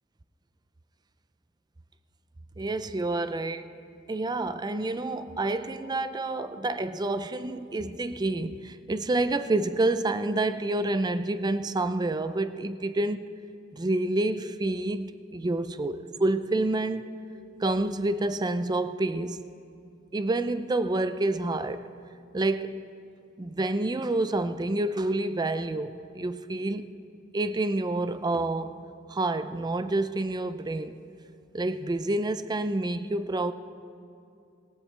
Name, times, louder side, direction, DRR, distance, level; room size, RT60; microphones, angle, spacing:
voice 1, 2.6-3.6 4.1-13.3 13.7-17.2 17.6-19.4 20.1-21.9 22.3-22.8 23.4-26.9 27.3-28.8 29.1-31.0 31.5-33.5, right 2 dB, 20° right, 0.4 m, -28 dB
18.5 x 18.0 x 3.3 m
head